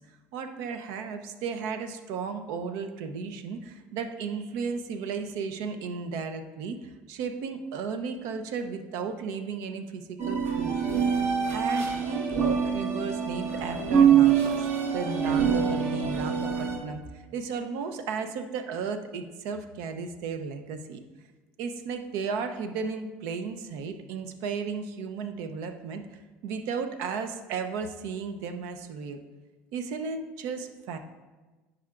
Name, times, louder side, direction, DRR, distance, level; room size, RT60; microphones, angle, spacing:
voice 1, 0.3-10.7 11.5-21.0 21.6-29.2 29.7-31.0, right 5 dB, 70° right, 8 dB, 0.6 m, -34 dB
sound 1, 10.2-16.8, right 7 dB, 50° right, 1.1 m, -24 dB
10.0 x 4.9 x 2.4 m, 1.2 s
supercardioid pair, 85°, 5 cm